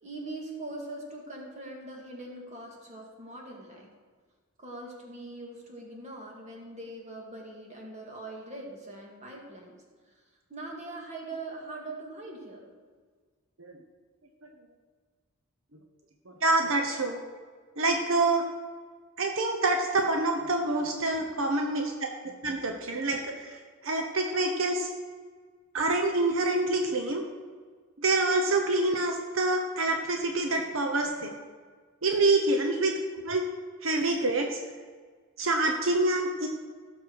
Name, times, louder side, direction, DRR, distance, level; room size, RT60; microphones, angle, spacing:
voice 1, 0.0-3.9 4.6-9.7 10.5-12.7 21.4-21.5, right 2 dB, 35° right, -1 dB, 2.3 m, -42 dB
voice 2, 16.3-17.2 17.8-18.5 19.2-22.1 22.4-24.9 25.7-27.2 28.0-31.3 32.0-33.4 33.8-34.6 35.4-36.5, right 2 dB, 70° right, 3 dB, 1.0 m, -26 dB
16.5 x 6.9 x 4.8 m, 1.5 s
head